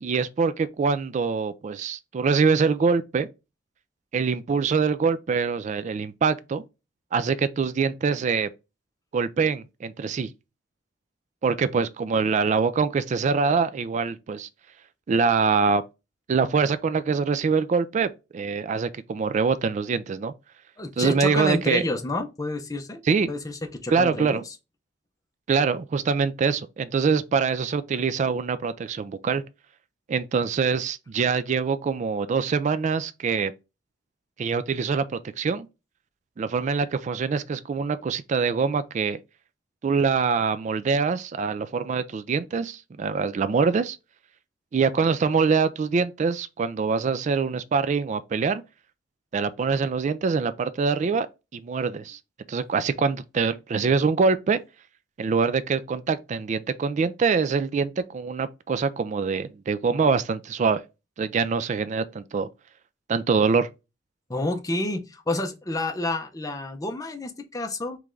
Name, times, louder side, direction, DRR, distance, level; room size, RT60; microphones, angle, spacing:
voice 1, 0.0-3.3 4.1-6.6 7.1-8.5 9.1-10.3 11.4-14.5 15.1-15.8 16.3-20.3 21.0-21.9 23.1-23.3 23.9-24.4 25.5-29.4 30.1-33.5 34.4-35.7 36.4-39.2 39.8-44.0 44.7-48.6 49.3-51.3 51.5-52.2 52.5-54.6 55.2-60.8 61.2-62.5 63.1-63.7, right 5 dB, 40° right, 0.3 m, -24 dB
voice 2, 20.8-23.0 23.3-24.5 64.3-68.0, left 2 dB, 20° left, 0.6 m, -29 dB
3.5 x 3.2 x 3.7 m
head